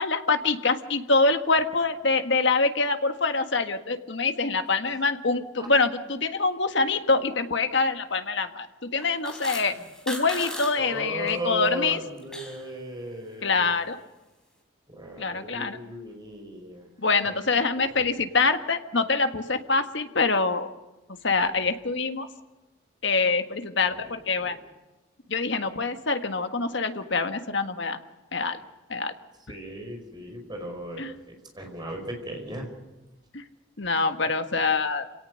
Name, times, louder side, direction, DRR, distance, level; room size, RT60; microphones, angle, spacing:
voice 1, 0.0-9.8 10.1-12.0 13.4-14.0 15.2-15.8 17.0-20.7 21.2-22.3 23.0-24.6 25.3-28.0 28.3-28.6 28.9-29.1 31.0-31.1 33.3-33.4 33.8-35.1, left 4 dB, 60° left, 7 dB, 1.6 m, -25 dB
sound 1, 9.0-10.7 11.0-11.3 11.7-12.6, left 1 dB, 5° left, 4.4 m, -37 dB
voice 2, 10.8-13.7 14.9-16.9 17.2-17.3 17.7-18.0 23.9-24.0 24.4-24.5 29.5-32.7, equal, 20° right, 3 dB, 5.2 m, -36 dB
27.5 x 18.0 x 6.5 m, 1.1 s
head